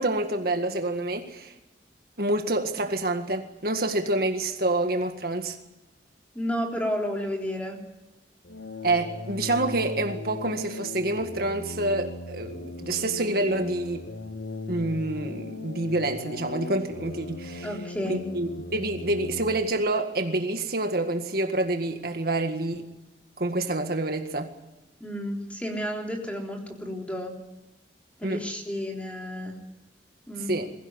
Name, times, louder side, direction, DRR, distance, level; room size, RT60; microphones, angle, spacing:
voice 1, 0.0-1.5 2.2-5.6 8.8-14.1 14.7-17.7 18.1-22.9 23.4-24.5 28.2-28.4 30.5-30.7, right 2 dB, 55° right, 5 dB, 1.9 m, -27 dB
voice 2, 6.3-7.8 17.6-18.2 25.0-27.3 28.2-29.6 30.3-30.5, equal, 10° left, 1 dB, 3.7 m, -31 dB
sound 1, 8.4-19.7, left 2 dB, 70° left, 1.4 m, -38 dB
22.5 x 16.0 x 9.8 m, 1.0 s
head